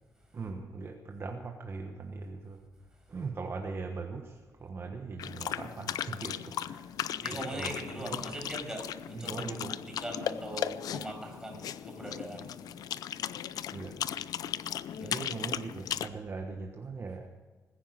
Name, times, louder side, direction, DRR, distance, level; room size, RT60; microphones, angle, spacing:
voice 1, 0.3-2.7 3.1-7.0 7.3-8.2 9.1-9.7 13.7-14.0 15.0-17.3, right 4 dB, 40° right, 3 dB, 1.3 m, -40 dB
sound 1, 5.2-16.1, left 10 dB, 85° left, 0.5 m, -37 dB
voice 2, 7.2-12.5 14.9-15.2, right 1 dB, 10° right, 2 dB, 6.3 m, -41 dB
20.5 x 10.0 x 6.5 m, 1.4 s
cardioid pair, 115°, 6 cm